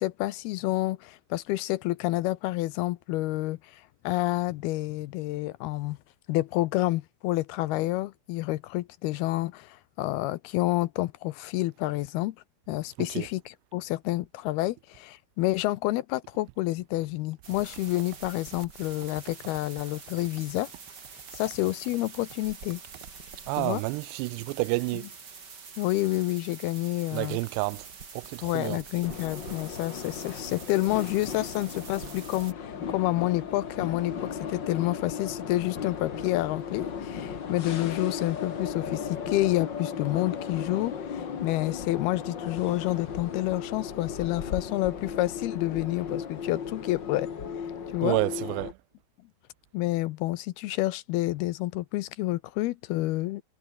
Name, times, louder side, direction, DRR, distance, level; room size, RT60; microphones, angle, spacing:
voice 1, 0.0-6.0 6.3-12.4 12.7-20.7 21.3-22.8 23.6-23.8 25.8-27.4 28.4-47.3 47.9-48.2 49.7-53.4, left 17 dB, 75° left, 2.4 m, -29 dB
sound 1, 17.4-32.5, right 5 dB, 30° right, 2.4 m, -46 dB
voice 2, 23.5-25.1 27.1-27.9 28.1-28.8 48.0-48.8, right 25 dB, 85° right, 2.6 m, -29 dB
sound 2, 29.0-48.7, left 7 dB, 50° left, 1.3 m, -36 dB
omnidirectional pair, 5.0 m